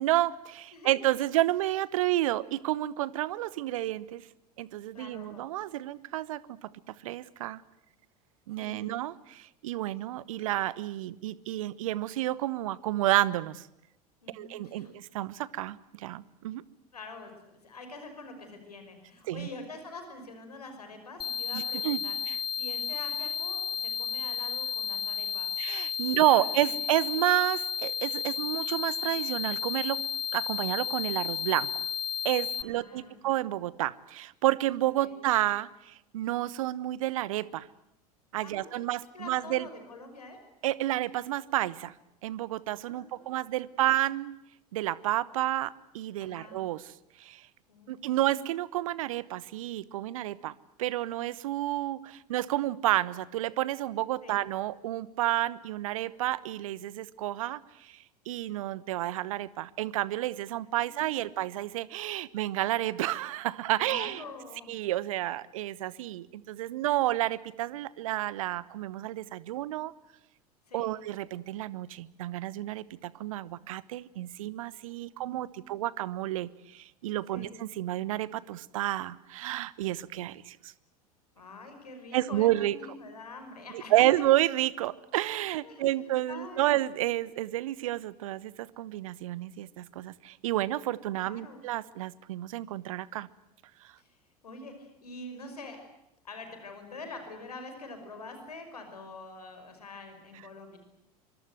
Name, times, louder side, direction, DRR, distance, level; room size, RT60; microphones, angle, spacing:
voice 1, 0.0-4.3 4.6-6.7 7.0-7.6 8.5-13.7 14.3-16.6 19.3-19.5 21.5-22.0 22.3-22.4 25.6-30.0 30.3-31.8 32.2-37.7 38.3-39.6 40.6-41.9 42.2-44.3 44.7-46.8 47.2-47.4 47.9-50.5 50.8-58.0 58.3-64.2 64.7-69.9 70.7-80.7 82.1-82.7 83.7-93.3, right 15 dB, 60° right, 20 dB, 1.1 m, -30 dB
voice 2, 0.7-1.2 4.9-5.4 8.6-8.9 14.2-14.9 16.9-22.2 22.5-25.6 26.1-26.7 32.6-33.2 35.0-35.1 38.4-38.8 39.1-40.4 42.8-43.6 46.2-46.6 47.7-48.2 54.2-54.4 60.8-61.3 63.8-64.7 70.7-71.0 74.8-75.7 77.3-77.5 81.4-84.2 85.6-86.7 91.2-91.6 94.0-94.2 94.4-95.8 96.2-100.8, left 2 dB, 75° left, 6 dB, 5.7 m, -46 dB
sound 1, 21.2-32.6, left 8 dB, 25° left, 1.1 m, -33 dB
25.0 x 24.5 x 7.9 m, 0.85 s
figure-of-eight pair, 75°, 20 cm